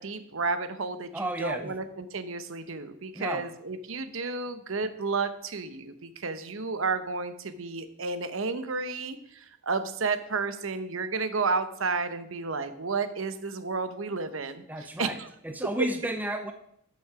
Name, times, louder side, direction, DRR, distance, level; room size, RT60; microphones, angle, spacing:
voice 1, 0.0-15.3, right 4 dB, 65° right, 10 dB, 0.9 m, -32 dB
voice 2, 1.1-1.8 3.1-3.4 14.7-15.2 15.4-16.5, right 1 dB, 10° right, 6 dB, 0.6 m, -32 dB
12.5 x 6.4 x 4.9 m, 0.69 s
head